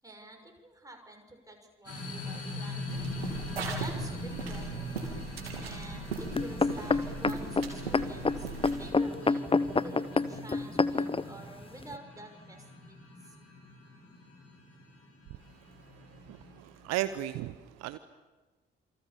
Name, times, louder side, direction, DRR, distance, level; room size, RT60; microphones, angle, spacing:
voice 1, 0.0-3.0 3.8-4.9 5.6-8.5 8.8-13.0 13.2-13.4, right 1 dB, 10° right, 3 dB, 6.4 m, -48 dB
sound 1, 1.9-16.9, left 2 dB, 50° left, 7.1 m, -42 dB
sound 2, 2.9-8.9, right 4 dB, 80° right, 2.8 m, -39 dB
sound 3, 6.4-11.2 11.9-12.0, left 3 dB, 20° left, 1.1 m, -27 dB
voice 2, 16.3-18.0, right 14 dB, 60° right, 13 dB, 0.9 m, -35 dB
28.0 x 25.5 x 7.1 m, 1.3 s
figure-of-eight pair, 40°, 30 cm